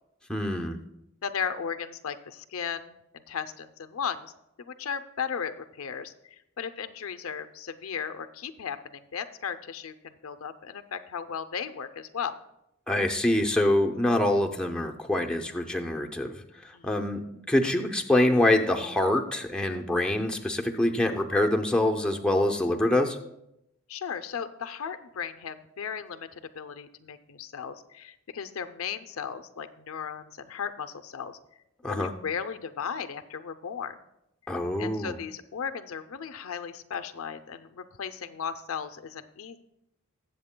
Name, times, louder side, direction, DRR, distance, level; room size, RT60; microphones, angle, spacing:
voice 1, 0.3-0.8 12.9-16.4 16.8-17.2 17.5-23.2 31.8-32.1 34.5-35.1, left 1 dB, 5° left, 2 dB, 0.6 m, -25 dB
voice 2, 1.2-4.3 4.6-12.4 16.7-16.9 23.9-26.3 26.5-31.4 31.8-34.0 34.8-39.6, left 7 dB, 80° left, 9 dB, 0.5 m, -36 dB
20.0 x 7.5 x 2.2 m, 0.83 s
head